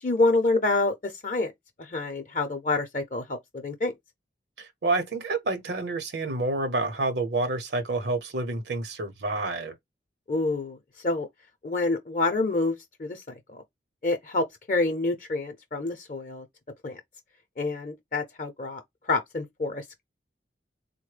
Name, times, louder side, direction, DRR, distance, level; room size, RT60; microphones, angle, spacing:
voice 1, 0.0-1.5 1.8-3.9 10.3-10.8 11.0-11.3 11.6-13.2 13.5-13.6 14.0-16.5 16.8-17.0 17.6-20.0, left 3 dB, 45° left, 0.5 m, -27 dB
voice 2, 4.6-9.8, right 2 dB, 75° right, 0.8 m, -28 dB
3.8 x 2.1 x 3.2 m
head